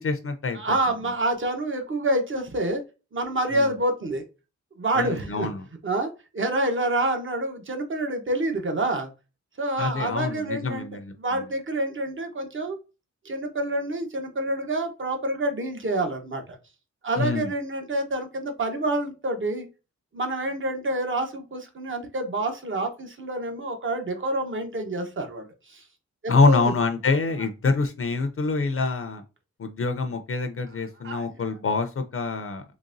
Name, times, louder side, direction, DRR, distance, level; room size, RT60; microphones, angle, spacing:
voice 1, 0.0-0.6 3.5-3.7 5.0-5.7 9.8-11.1 17.2-17.5 26.3-29.2 29.6-32.6, left 3 dB, 50° left, 7 dB, 0.5 m, -25 dB
voice 2, 0.5-2.8 3.1-4.2 4.8-5.5 5.8-9.1 9.6-10.9 11.2-12.8 13.2-16.6 17.0-19.7 20.1-25.8 26.2-26.7 31.0-31.4, right 1 dB, 40° right, 5 dB, 0.9 m, -27 dB
3.9 x 3.4 x 2.5 m, 0.30 s
wide cardioid pair, 115°, 29 cm